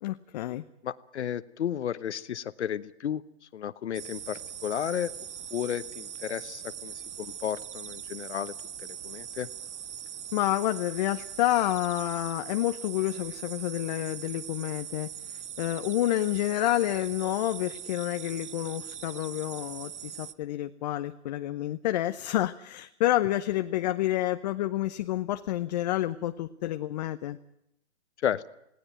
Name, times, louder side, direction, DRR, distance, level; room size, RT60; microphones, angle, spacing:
voice 1, 0.0-0.6 10.3-27.4, left 14 dB, 35° left, 10 dB, 0.8 m, -29 dB
voice 2, 0.8-3.2 3.5-5.1 5.5-8.5 9.0-9.5 28.2-28.5, left 9 dB, 70° left, 13 dB, 1.0 m, -33 dB
sound 1, 3.9-20.3, right 8 dB, 75° right, 1.1 m, -41 dB
19.0 x 17.5 x 9.2 m, 0.81 s
hypercardioid pair, 145°, 35 cm